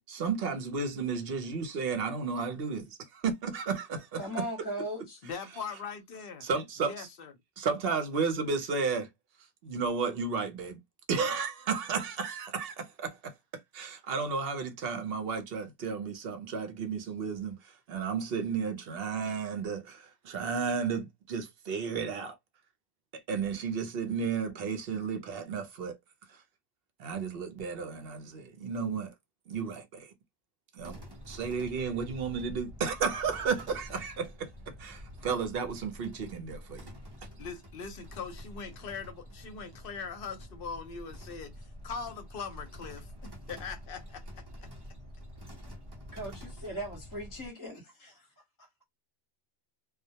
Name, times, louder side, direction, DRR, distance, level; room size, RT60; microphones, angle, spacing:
voice 1, 0.1-4.4 6.4-6.9 7.6-9.1 9.6-10.8 11.1-13.3 13.7-17.6 17.9-22.4 23.1-26.0 27.0-29.1 29.5-30.1 30.7-34.5 34.8-36.9, right 5 dB, 60° right, 0.8 m, -33 dB
voice 2, 4.2-5.2 46.1-48.3, equal, 20° left, 0.9 m, -38 dB
voice 3, 5.2-6.5 6.8-7.3 37.4-44.7, left 5 dB, 60° left, 0.7 m, -41 dB
sound 1, 30.8-47.5, equal, 25° right, 0.7 m, -47 dB
2.1 x 2.1 x 2.7 m
omnidirectional pair, 1.2 m